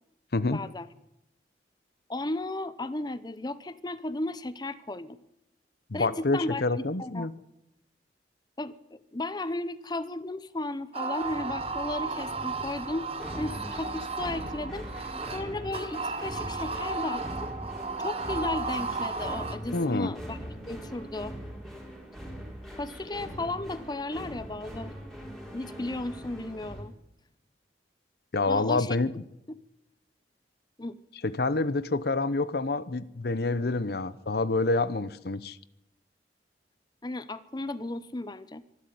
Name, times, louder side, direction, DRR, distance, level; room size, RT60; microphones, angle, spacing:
voice 1, 0.5-0.9 2.1-5.2 5.9-7.3 8.6-13.1 13.4-14.9 15.3-17.5 18.0-21.3 22.8-25.0 25.5-26.9 28.5-29.0 30.8-31.0 37.0-38.6, left 2 dB, 25° left, 0.8 m, -35 dB
voice 2, 5.9-7.3 19.7-20.1 28.3-29.2 31.2-35.6, left 3 dB, 60° left, 0.8 m, -27 dB
sound 1, 10.9-19.6, right 4 dB, 35° right, 1.5 m, -34 dB
sound 2, 11.2-26.8, equal, ahead, 4.8 m, -41 dB
25.0 x 12.0 x 9.4 m
head